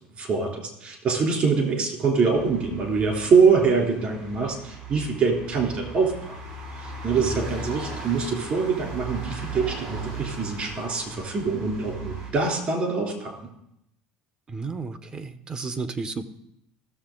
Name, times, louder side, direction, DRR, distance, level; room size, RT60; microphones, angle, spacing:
voice 1, 0.2-6.3 6.8-13.5, right 5 dB, 45° right, 1 dB, 3.3 m, -24 dB
sound 1, 2.3-12.3, right 3 dB, 70° right, 3.6 m, -37 dB
voice 2, 7.2-7.5 14.5-16.2, right 4 dB, 25° right, 11 dB, 0.8 m, -32 dB
16.5 x 6.8 x 3.9 m, 0.79 s
supercardioid pair, 110°, 3 cm